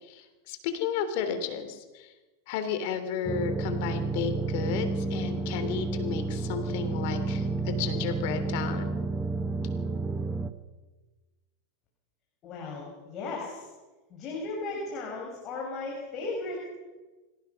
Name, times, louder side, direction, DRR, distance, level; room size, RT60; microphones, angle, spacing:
voice 1, 0.0-2.1 2.5-8.9, left 7 dB, 60° left, 9 dB, 3.4 m, -33 dB
sound 1, 3.3-10.5, right 3 dB, 15° right, 1.2 m, -31 dB
voice 2, 12.4-13.7 14.1-16.7, left 3 dB, 40° left, -2 dB, 6.3 m, -36 dB
25.0 x 17.5 x 6.0 m, 1.2 s
hypercardioid pair, 115°, 0 cm